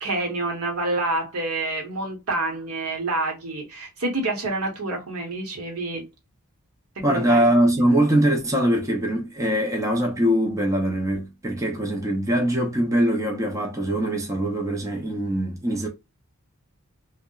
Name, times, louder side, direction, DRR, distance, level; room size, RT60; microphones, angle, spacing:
voice 1, 0.0-6.0 7.0-7.5, right 2 dB, 75° right, 0.9 m, -28 dB
voice 2, 7.0-15.9, right 1 dB, 15° right, 0.4 m, -22 dB
2.8 x 2.0 x 2.3 m
head